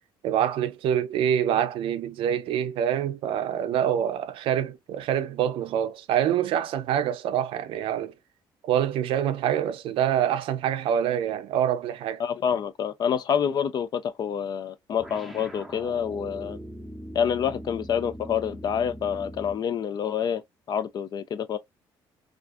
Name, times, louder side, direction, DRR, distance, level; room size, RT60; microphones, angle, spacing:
voice 1, 0.2-8.1 8.6-12.2, right 10 dB, 75° right, 0.5 m, -26 dB
voice 2, 12.2-16.6 17.1-20.4 20.7-21.6, left 8 dB, 50° left, 0.4 m, -27 dB
sound 1, 15.0-19.7, equal, ahead, 0.7 m, -41 dB
2.4 x 2.3 x 2.4 m
cardioid pair, 100°, 9 cm